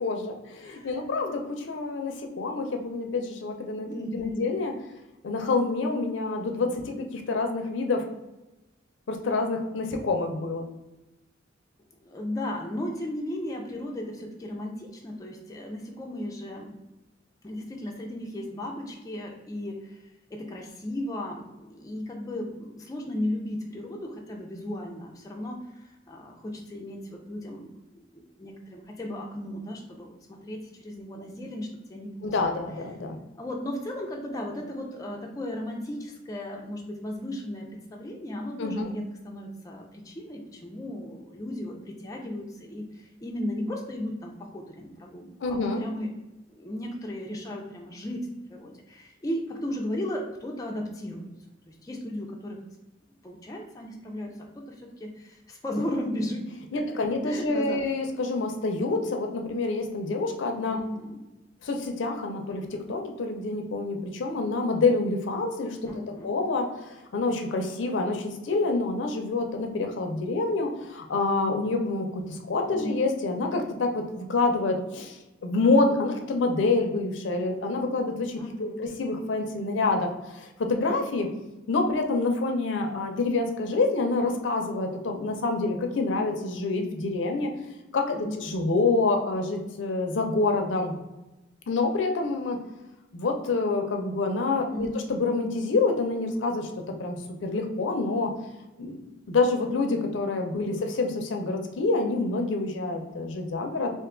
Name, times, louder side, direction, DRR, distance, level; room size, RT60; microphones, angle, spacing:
voice 1, 0.0-4.7 5.2-8.1 9.1-10.6 32.2-33.2 38.6-38.9 45.4-45.8 56.7-60.8 61.6-65.9 66.2-81.3 81.7-87.5 87.9-90.9 91.7-92.6 93.1-96.7 97.0-97.2 97.4-98.3 98.8-99.0 99.3-103.9, left 3 dB, 75° left, 4 dB, 0.5 m, -27 dB
voice 2, 0.6-1.0 3.9-4.5 12.0-16.8 17.4-27.7 28.1-32.6 33.4-46.1 46.6-51.3 51.7-52.6 53.2-54.4 54.7-57.8 60.7-61.2 65.8-66.3 72.7-73.0 78.3-78.8 88.1-88.6 94.7-95.0 100.7-100.8, left 1 dB, 20° left, 0 dB, 0.3 m, -35 dB
2.5 x 2.3 x 3.6 m, 1.0 s
head